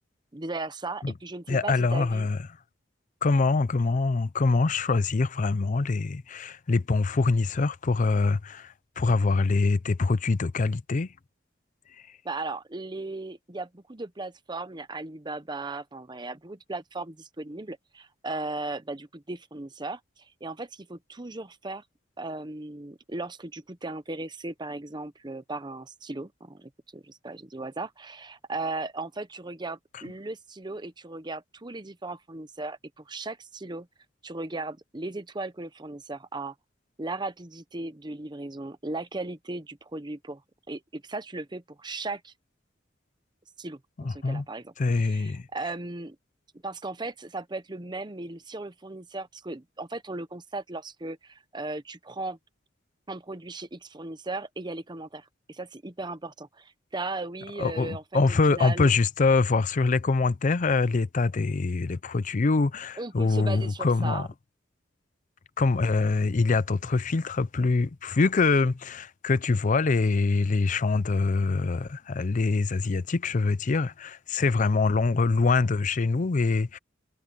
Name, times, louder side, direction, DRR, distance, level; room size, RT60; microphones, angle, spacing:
voice 1, 0.3-2.3 12.2-21.8 22.2-33.9 34.2-36.5 37.0-40.4 40.7-42.3 43.6-46.2 46.6-52.4 53.1-58.2 58.5-58.9 63.0-64.3, right 2 dB, 25° right, 1.0 m, -37 dB
voice 2, 1.5-2.4 3.2-11.1 12.0-12.1 29.9-30.0 44.0-44.4 44.8-45.5 57.6-64.3 65.6-76.8, left 3 dB, 45° left, 0.5 m, -24 dB
head